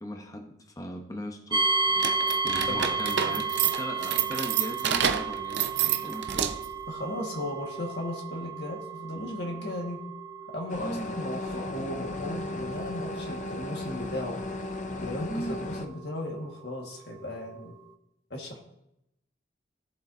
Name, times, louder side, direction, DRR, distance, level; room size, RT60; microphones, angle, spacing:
voice 1, 0.0-1.6 2.4-6.6 10.8-11.1 15.3-15.6, equal, 20° left, 3 dB, 0.9 m, -38 dB
sound 1, 1.5-16.3, right 4 dB, 25° right, 0.7 m, -33 dB
sound 2, 1.9-6.8, right 9 dB, 65° right, 0.6 m, -28 dB
voice 2, 2.7-3.4 5.8-6.2 6.9-10.0 10.5-14.4 14.9-17.8 18.3-18.6, left 1 dB, 60° left, 0 dB, 1.8 m, -36 dB
sound 3, 10.7-15.9, left 2 dB, 40° left, 0.6 m, -35 dB
16.5 x 7.4 x 2.7 m, 0.83 s
head